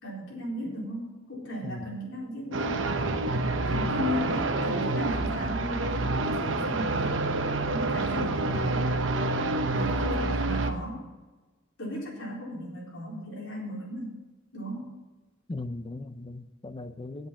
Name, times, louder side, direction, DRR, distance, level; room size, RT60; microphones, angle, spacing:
voice 1, 0.0-2.8 3.7-7.3 7.7-9.0 9.7-11.1 11.8-14.2 14.5-14.9, left 1 dB, 70° left, -4 dB, 4.2 m, -36 dB
voice 2, 1.6-1.9 3.7-4.0 6.8-7.2 9.9-10.1 15.5-17.3, left 2 dB, 25° left, 12 dB, 0.5 m, -39 dB
sound 1, 2.5-10.7, right 2 dB, 70° right, 0.9 m, -28 dB
8.5 x 8.0 x 8.6 m, 1.2 s
head